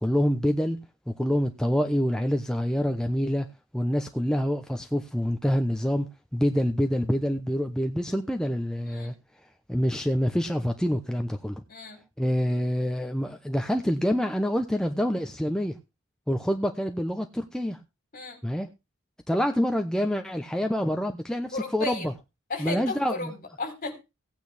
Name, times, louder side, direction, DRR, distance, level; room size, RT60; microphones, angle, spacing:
voice 1, 0.0-0.8 1.1-3.5 3.7-9.1 9.7-11.6 12.2-15.7 16.3-17.8 18.4-18.7 19.3-22.1 22.6-23.3, equal, 5° left, 0.9 m, -26 dB
voice 2, 11.7-12.0 18.1-18.4 21.5-22.1 22.5-23.9, left 3 dB, 40° left, 3.9 m, -34 dB
17.0 x 9.2 x 3.5 m
head